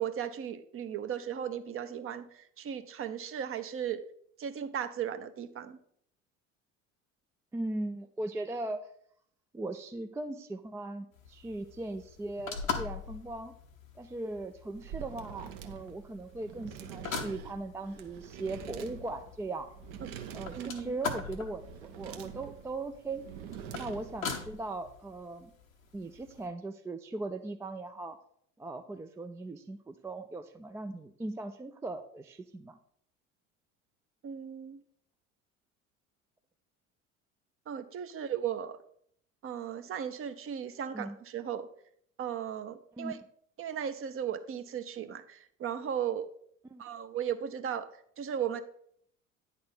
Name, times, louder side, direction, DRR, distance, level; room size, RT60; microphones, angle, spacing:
voice 1, 0.0-4.0 4.4-5.8 20.5-21.0 34.2-34.8 37.7-38.8 39.4-41.7 42.2-43.2 43.6-46.3 46.8-47.9 48.2-48.6, right 9 dB, 35° right, 10 dB, 0.7 m, -36 dB
voice 2, 7.5-8.9 9.5-13.5 14.0-19.7 20.3-23.2 23.7-25.5 25.9-28.2 28.6-32.8 40.9-41.2 43.0-43.1 46.7-46.8, right 2 dB, 10° right, 7 dB, 0.3 m, -39 dB
sound 1, 11.1-26.5, left 5 dB, 90° left, 0.9 m, -43 dB
sound 2, 14.7-24.4, right 8 dB, 60° right, 0.9 m, -45 dB
9.3 x 4.2 x 5.4 m, 0.65 s
figure-of-eight pair, 65°, 39 cm